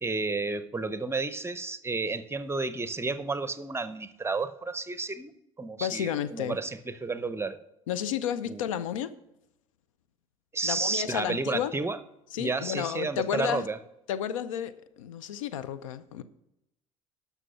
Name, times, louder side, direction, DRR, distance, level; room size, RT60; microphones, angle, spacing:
voice 1, 0.0-5.3 5.6-7.6 8.5-8.6 10.5-12.0 12.4-13.8, right 3 dB, 15° right, 0.8 m, -31 dB
voice 2, 5.8-6.6 7.9-9.1 10.6-11.7 12.3-13.7 14.1-16.2, left 9 dB, 75° left, 0.6 m, -32 dB
12.5 x 5.8 x 5.6 m
hypercardioid pair, 60°, 17 cm